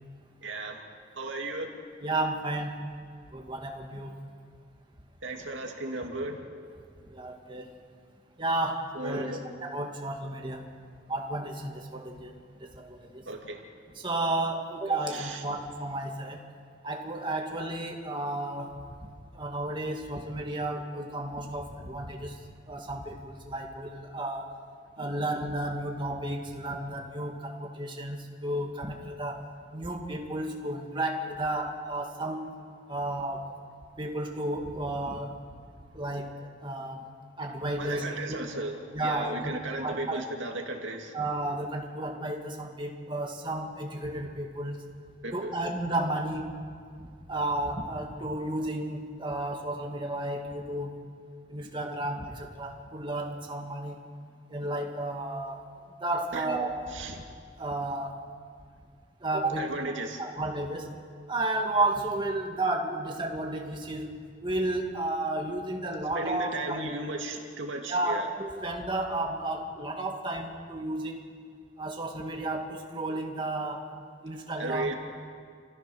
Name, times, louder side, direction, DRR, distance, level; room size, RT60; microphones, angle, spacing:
voice 1, 0.4-0.8 1.2-1.7 5.2-6.4 8.9-9.4 13.3-13.6 15.1-15.4 37.8-41.1 45.2-45.5 56.3-56.4 56.9-57.2 59.6-60.2 66.1-68.3 74.6-74.9, right 2 dB, 75° right, 2 dB, 2.4 m, -35 dB
voice 2, 2.0-2.9 3.3-4.1 7.1-7.7 8.4-9.3 9.6-10.6 11.1-12.3 12.7-13.2 13.9-16.4 16.8-18.9 19.3-22.4 22.7-24.5 25.0-29.4 29.7-32.5 32.9-33.5 34.0-35.4 35.9-37.1 37.4-38.4 38.9-40.2 41.1-44.8 45.3-46.5 47.0-50.9 51.5-54.0 54.5-55.7 56.0-57.2 57.6-58.2 59.2-59.9 60.2-60.9 61.3-64.1 64.4-66.8 67.9-71.2 71.8-73.8 74.2-74.9, right 2 dB, 25° right, 1 dB, 2.0 m, -32 dB
29.0 x 14.5 x 6.3 m, 2.1 s
head